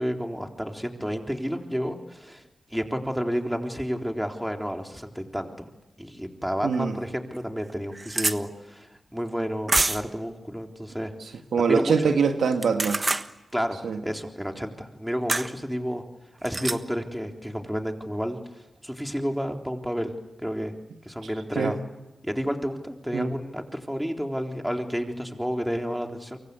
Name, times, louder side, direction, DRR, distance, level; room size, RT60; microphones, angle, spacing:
voice 1, 0.0-2.4 2.7-5.7 6.0-11.9 13.5-16.0 16.4-18.4 18.8-20.1 20.4-20.7 21.1-21.8 22.2-26.4, equal, 5° right, 3 dB, 3.8 m, -31 dB
voice 2, 6.6-7.0 11.5-13.0 13.8-14.0 21.6-21.7 23.1-23.3, right 5 dB, 80° right, 6 dB, 1.8 m, -23 dB
sound 1, 6.7-6.8 7.3-7.4 7.6-8.4 9.7-10.2 12.5-13.3 15.3-15.5 16.4-16.8, right 2 dB, 35° right, 1.3 m, -26 dB
28.5 x 24.5 x 8.3 m, 1.0 s
supercardioid pair, 40°, 0 cm